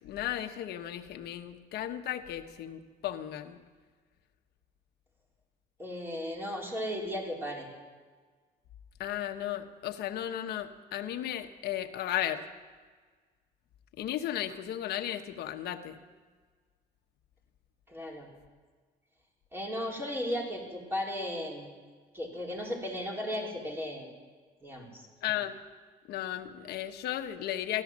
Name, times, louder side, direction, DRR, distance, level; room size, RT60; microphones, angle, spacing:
voice 1, 0.0-3.6 9.0-12.4 14.0-16.0 25.2-25.6 26.1-27.8, left 12 dB, 75° left, 6 dB, 1.2 m, -35 dB
voice 2, 5.8-7.7 17.9-18.3 19.5-21.7 22.1-24.1 24.6-25.0, equal, 15° right, -1 dB, 4.0 m, -35 dB
15.5 x 12.5 x 7.4 m, 1.5 s
cardioid pair, 110°, 17 cm